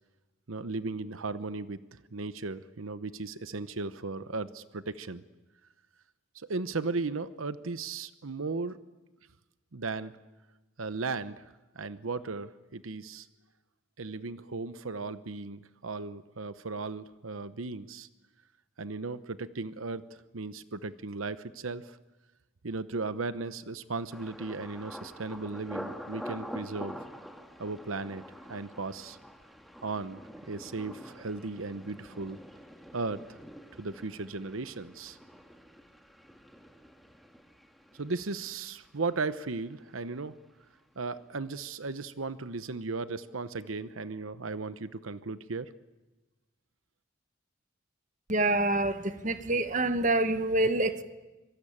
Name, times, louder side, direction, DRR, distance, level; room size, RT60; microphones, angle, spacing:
voice 1, 0.5-5.2 6.3-8.8 9.7-10.1 10.8-11.5 11.7-13.3 14.0-18.1 18.8-20.0 20.3-22.0 22.6-26.9 27.6-28.2 28.5-29.2 29.8-30.2 30.5-32.4 32.9-33.4 33.8-35.2 37.9-40.3 41.0-45.7, right 3 dB, 90° right, 0.9 m, -36 dB
Thunder, 24.1-39.9 40.1-40.8 41.2-41.4, equal, ahead, 1.7 m, -46 dB
voice 2, 48.3-51.0, right 2 dB, 40° right, 1.3 m, -26 dB
25.0 x 24.0 x 8.8 m
head